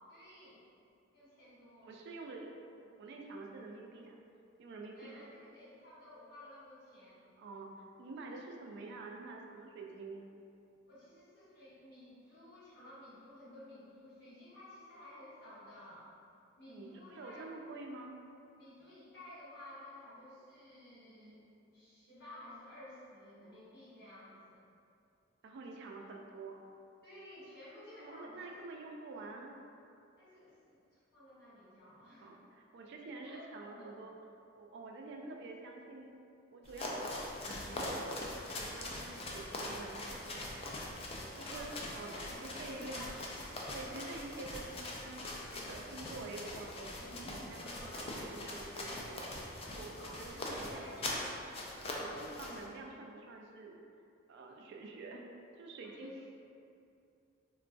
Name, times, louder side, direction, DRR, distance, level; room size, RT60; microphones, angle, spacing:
voice 1, 0.1-0.6 1.1-1.9 4.9-7.2 10.9-16.1 16.6-17.5 18.6-24.6 27.0-28.7 30.2-32.4 33.2-33.9 41.4-41.7 42.0-43.2 47.6-48.1 49.9-50.2 50.7-51.4 51.9-52.2 55.8-56.3, left 1 dB, 55° left, -10 dB, 1.2 m, -54 dB
voice 2, 1.8-2.5 2.8-4.2 4.6-5.1 7.4-10.3 16.7-18.2 25.4-26.6 28.0-29.5 32.2-34.1 34.6-36.1 36.5-38.2 38.5-40.8 41.3-42.1 42.4-43.0 43.7-49.3 49.6-50.9 51.9-53.8 54.3-55.2 55.6-56.3, right 3 dB, 60° right, 1 dB, 0.3 m, -48 dB
sound 1, 36.6-52.6, left 1 dB, 30° left, 0.4 m, -42 dB
3.7 x 2.2 x 2.5 m, 2.5 s
head